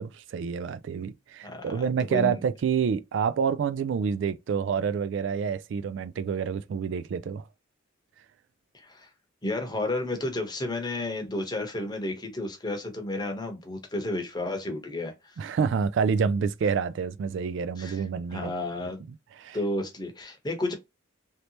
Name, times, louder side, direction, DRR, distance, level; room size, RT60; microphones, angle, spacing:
voice 1, 0.0-7.4 15.4-18.5 19.4-19.6, right 6 dB, 60° right, 0.3 m, -28 dB
voice 2, 1.4-2.4 8.7-9.1 9.4-15.3 17.8-18.0 18.3-19.0 19.5-20.7, left 2 dB, 20° left, 0.9 m, -32 dB
3.2 x 2.8 x 2.8 m
head